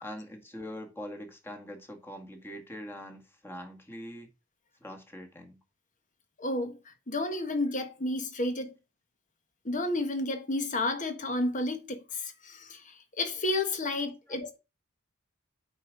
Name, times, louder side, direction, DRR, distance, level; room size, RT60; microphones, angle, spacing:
voice 1, 0.0-4.3 4.8-5.6, equal, 10° left, 1.7 m, -43 dB
voice 2, 6.4-6.8 7.1-8.7 9.6-14.6, left 2 dB, 40° left, 1.5 m, -31 dB
8.2 x 4.9 x 5.2 m
head